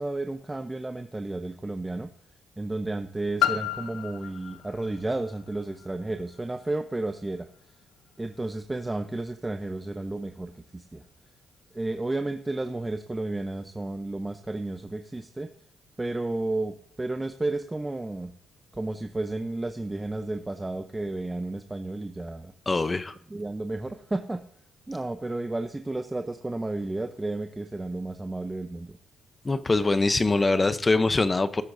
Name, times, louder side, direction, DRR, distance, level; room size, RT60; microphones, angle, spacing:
voice 1, 0.0-2.1 2.6-7.5 8.2-11.0 11.7-15.5 16.0-18.3 18.7-22.5 23.3-24.4 24.9-28.9, right 2 dB, 15° right, 6 dB, 0.7 m, -32 dB
Piano, 3.4-8.8 9.6-9.7, left 11 dB, 70° left, 0.7 m, -34 dB
voice 2, 22.7-23.1 29.4-31.6, left 3 dB, 25° left, 12 dB, 0.7 m, -23 dB
18.0 x 8.2 x 2.6 m, 0.63 s
cardioid pair, 100°, 0 cm